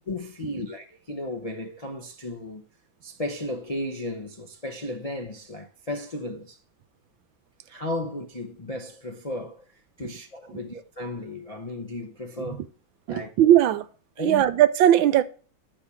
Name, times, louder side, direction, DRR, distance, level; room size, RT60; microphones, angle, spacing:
voice 1, 0.1-2.6 3.0-6.6 7.7-9.6 10.0-12.6 13.1-13.3 14.2-14.4, left 1 dB, 55° left, 0.4 m, -34 dB
voice 2, 13.1-13.9 14.2-15.2, right 12 dB, 80° right, 1.4 m, -19 dB
8.3 x 5.5 x 7.0 m
omnidirectional pair, 2.1 m